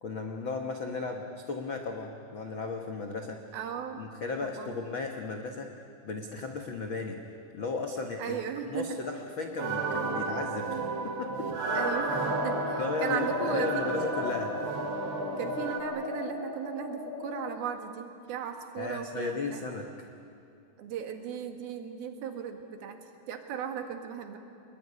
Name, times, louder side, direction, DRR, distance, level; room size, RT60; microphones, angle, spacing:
voice 1, 0.0-3.4 4.0-5.7 6.0-7.2 7.5-8.4 8.6-10.8 11.0-11.5 12.8-14.5 18.8-20.1, left 4 dB, 85° left, 3 dB, 1.1 m, -35 dB
voice 2, 3.5-4.0 4.4-4.8 8.2-9.0 11.7-13.7 15.4-19.6 20.8-23.0 23.3-24.4, right 8 dB, 70° right, 5 dB, 3.5 m, -36 dB
sound 1, 9.6-15.8, right 4 dB, 45° right, 3.0 m, -33 dB
sound 2, 11.7-17.6, left 5 dB, 30° left, 3.0 m, -36 dB
26.0 x 21.5 x 9.7 m, 2.6 s
omnidirectional pair, 4.7 m